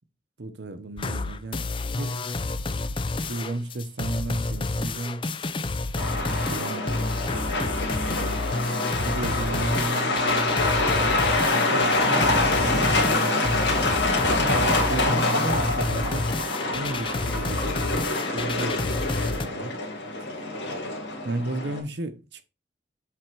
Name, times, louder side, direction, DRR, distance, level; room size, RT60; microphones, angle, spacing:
voice 1, 0.4-1.6 1.9-2.2 3.3-5.3 6.5-7.0 8.1-8.4 9.0-10.7 11.5-13.7 14.3-16.3 16.7-19.7 21.2-22.4, right 2 dB, 65° right, 0.8 m, -33 dB
sound 1, 1.0-19.5, left 3 dB, 25° left, 0.4 m, -30 dB
Truck, 6.0-21.8, left 2 dB, 75° left, 2.0 m, -25 dB
7.6 x 3.5 x 4.7 m
head